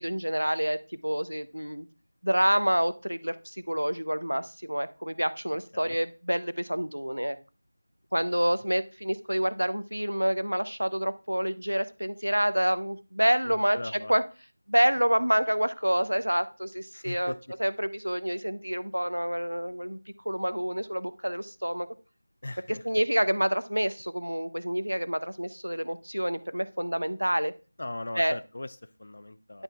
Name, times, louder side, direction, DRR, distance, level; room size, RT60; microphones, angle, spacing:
voice 1, 0.0-1.9 2.2-7.4 8.1-13.8 14.1-14.2 14.7-17.3 17.6-20.0 20.3-21.9 22.8-27.5 28.2-28.3, equal, 80° right, 14 dB, 0.7 m, -27 dB
voice 2, 13.4-14.1 16.9-17.4 22.4-23.0 27.8-29.6, left 2 dB, 45° left, 14 dB, 0.5 m, -39 dB
11.0 x 8.8 x 2.4 m, 0.35 s
figure-of-eight pair, 170°, 0 cm